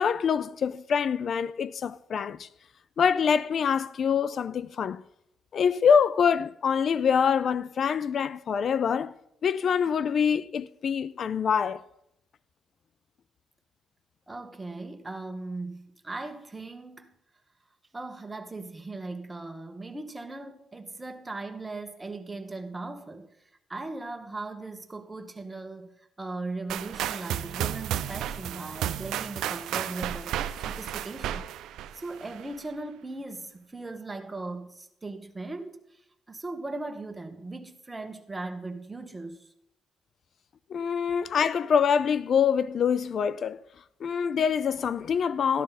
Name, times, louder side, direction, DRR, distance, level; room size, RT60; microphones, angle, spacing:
voice 1, 0.0-2.5 3.0-5.0 5.5-9.1 9.4-11.8 40.7-43.6 44.0-45.6, left 7 dB, 55° left, 0.3 m, -25 dB
voice 2, 14.3-17.1 17.9-23.3 23.7-25.9 26.2-31.5 31.9-35.8 36.3-39.5 41.1-41.3, right 2 dB, 15° right, 1.2 m, -38 dB
sound 1, 26.7-32.5, right 11 dB, 85° right, 0.5 m, -33 dB
12.5 x 12.5 x 4.1 m
cardioid pair, 90°, 0 cm